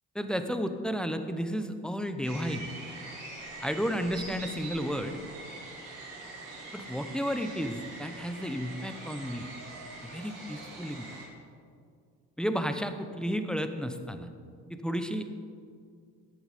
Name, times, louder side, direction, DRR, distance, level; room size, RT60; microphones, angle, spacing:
voice 1, 0.1-2.7 3.6-5.2 6.7-9.5 10.0-11.1 12.4-14.3 14.7-15.3, equal, ahead, 8 dB, 0.9 m, -32 dB
sound 1, 2.2-11.2, right 2 dB, 80° right, 2.9 m, -44 dB
12.5 x 8.6 x 5.3 m, 2.2 s
supercardioid pair, 70°, 39 cm